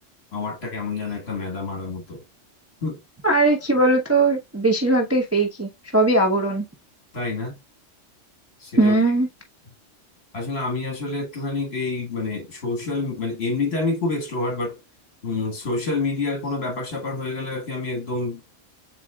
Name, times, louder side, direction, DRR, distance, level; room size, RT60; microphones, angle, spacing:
voice 1, 0.3-2.2 2.8-3.0 7.1-7.6 8.6-9.0 10.3-14.8 15.2-18.4, left 3 dB, 55° left, 1.9 m, -28 dB
voice 2, 3.2-6.6 8.8-9.3, right 2 dB, 15° right, 0.7 m, -19 dB
7.5 x 3.1 x 2.3 m
omnidirectional pair, 1.3 m